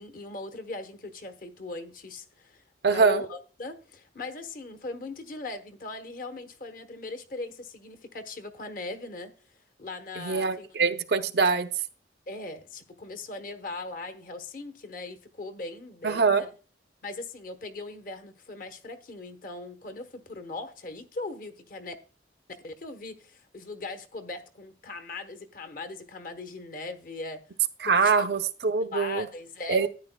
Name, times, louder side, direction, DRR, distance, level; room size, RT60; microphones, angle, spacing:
voice 1, 0.0-9.3 9.8-10.7 11.3-11.5 12.3-16.5 17.0-21.9 22.5-27.4 27.8-28.3 28.9-29.9, left 3 dB, 50° left, 1.0 m, -39 dB
voice 2, 2.8-3.2 10.2-11.7 16.0-16.4 27.8-29.3 29.7-29.9, right 5 dB, 60° right, 0.6 m, -24 dB
13.0 x 9.6 x 2.2 m
head